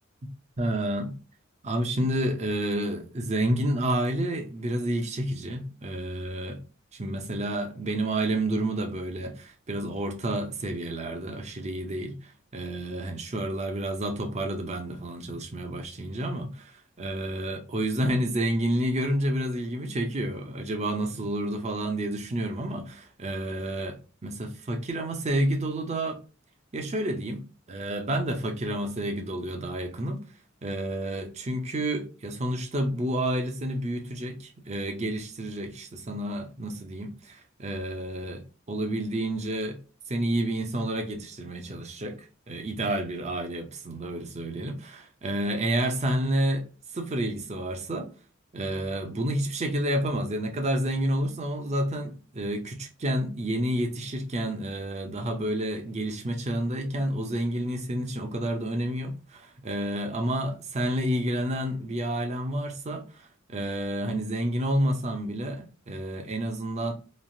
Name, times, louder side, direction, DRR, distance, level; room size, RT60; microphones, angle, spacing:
voice 1, 0.6-1.1 1.6-6.6 6.9-26.2 26.7-30.2 30.6-39.8 40.1-42.2 42.5-46.7 46.9-48.1 48.5-66.9, right 1 dB, 35° right, 0.6 m, -30 dB
3.1 x 2.4 x 2.6 m
head